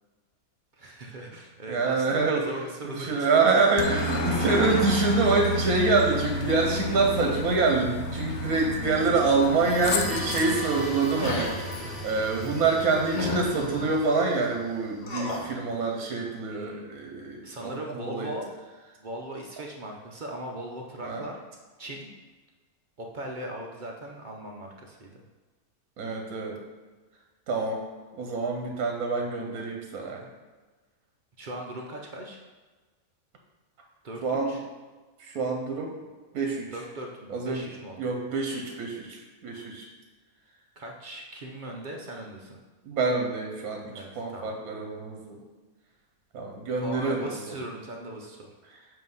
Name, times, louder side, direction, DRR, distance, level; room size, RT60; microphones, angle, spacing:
voice 1, 0.8-3.6 4.1-4.2 8.3-8.5 11.8-12.1 12.7-12.8 16.5-16.9 17.4-18.5 19.0-21.4 21.8-22.1 23.0-25.2 31.4-32.4 34.0-34.6 36.7-38.1 38.5-38.6 40.8-42.6 43.9-44.5 46.8-48.5, right 1 dB, 50° right, 0 dB, 0.6 m, -39 dB
voice 2, 1.7-2.4 2.8-18.3 21.0-21.3 26.0-26.6 27.5-27.8 28.2-30.2 34.2-34.6 35.2-36.0 36.3-36.7 37.3-37.6 38.0-39.9 42.8-45.4 46.3-47.4, right 3 dB, 80° right, 2 dB, 1.2 m, -26 dB
Aircraft, 3.8-10.6, left 1 dB, 85° left, 1.1 m, -31 dB
sound 1, 9.3-15.0, equal, ahead, 1.1 m, -38 dB
sound 2, 11.2-11.6 13.1-13.9 15.0-15.5, left 2 dB, 40° left, 0.8 m, -31 dB
7.4 x 2.9 x 5.4 m, 1.3 s
omnidirectional pair, 1.5 m